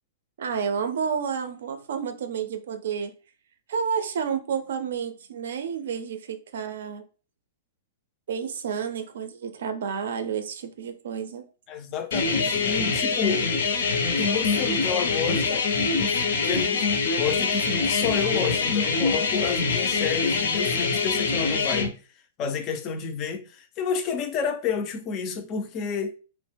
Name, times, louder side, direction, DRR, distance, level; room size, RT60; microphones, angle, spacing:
voice 1, 0.4-3.1 3.7-7.0 8.3-11.4, right 7 dB, 70° right, 0.4 m, -30 dB
voice 2, 11.7-13.5 14.2-15.7 16.0-22.0 22.4-26.2, left 6 dB, 25° left, 0.3 m, -30 dB
sound 1, 12.1-21.9, left 4 dB, 70° left, 0.6 m, -24 dB
2.9 x 2.0 x 3.3 m
supercardioid pair, 175°, 0 cm